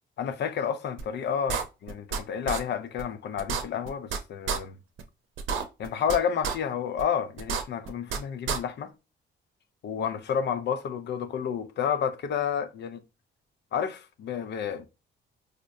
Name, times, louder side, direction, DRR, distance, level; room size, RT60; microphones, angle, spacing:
voice 1, 0.2-4.8 5.8-8.9 9.8-13.0 13.7-14.9, left 7 dB, 60° left, 0.6 m, -30 dB
sound 1, 1.0-1.1 1.5-2.2 2.5-2.6 3.0-3.1 3.4-4.2 4.5-4.6 5.0-5.1 5.4-6.2 6.4-6.6 7.0-7.1 7.4-8.2 8.5-8.6, right 6 dB, 75° right, 0.7 m, -29 dB
4.9 x 2.1 x 2.6 m
cardioid pair, 90°, 20 cm